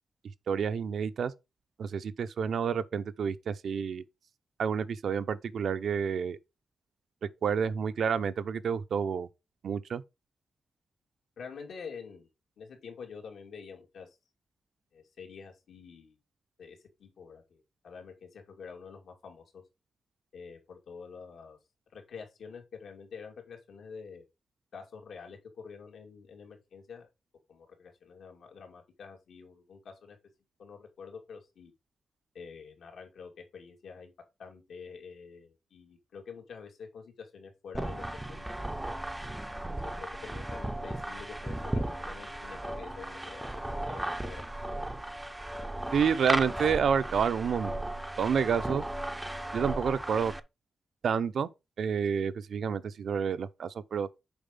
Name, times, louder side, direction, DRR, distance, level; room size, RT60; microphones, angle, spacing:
voice 1, 0.5-1.3 1.8-4.0 4.6-6.4 7.4-9.3 9.6-10.0 45.9-47.7 48.2-48.8 49.5-50.3 51.0-51.5 51.8-54.1, right 7 dB, 65° right, 0.6 m, -29 dB
voice 2, 11.4-12.3 12.6-14.2 14.9-16.2 16.6-19.6 20.3-21.6 21.9-24.2 24.7-27.1 27.5-30.2 30.6-31.7 32.3-34.1 34.4-38.5 38.9-39.1 40.0-44.4, left 5 dB, 80° left, 2.5 m, -47 dB
sound 1, 37.7-50.4, right 1 dB, 10° right, 0.5 m, -36 dB
7.1 x 4.8 x 5.3 m
wide cardioid pair, 165°, 0 cm